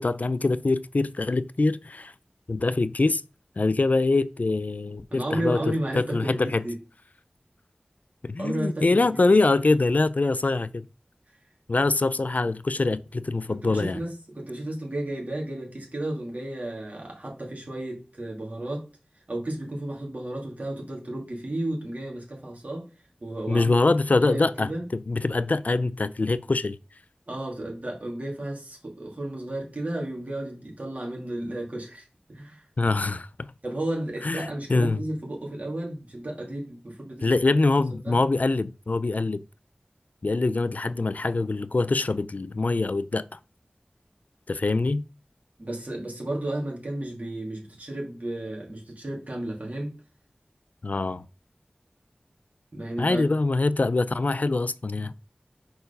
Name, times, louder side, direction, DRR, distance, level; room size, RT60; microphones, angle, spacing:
voice 1, 0.0-2.1 2.5-3.2 3.6-6.6 8.2-10.9 11.7-14.0 23.5-26.8 32.8-33.5 34.2-35.0 37.2-39.4 40.2-43.4 44.5-45.0 50.8-51.2 53.0-55.1, left 3 dB, 60° left, 0.3 m, -24 dB
voice 2, 5.1-6.4 6.6-6.8 8.4-9.1 13.5-18.9 19.3-22.8 23.2-23.8 24.1-24.8 27.3-32.6 33.6-37.4 38.0-38.2 45.6-49.9 52.7-53.3, right 1 dB, 55° right, 2.7 m, -33 dB
4.7 x 4.5 x 5.3 m
wide cardioid pair, 50°, 3 cm